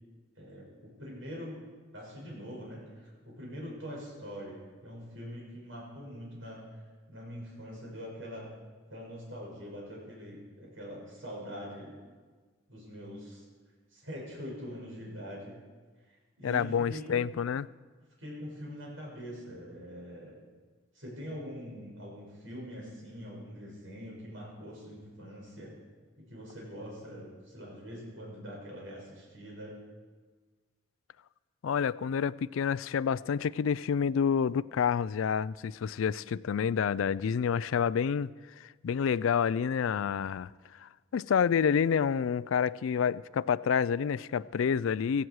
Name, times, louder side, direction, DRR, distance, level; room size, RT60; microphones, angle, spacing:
voice 1, 0.3-1.6 1.9-6.8 7.1-8.5 8.9-12.0 12.7-13.4 13.9-15.6 16.1-17.3 18.2-20.4 20.9-25.7 26.2-29.7, equal, 70° right, 6.6 m, -43 dB
voice 2, 16.4-17.7 31.6-38.3 38.8-40.5 40.8-45.3, left 7 dB, 75° left, 0.3 m, -28 dB
17.0 x 15.5 x 4.8 m
head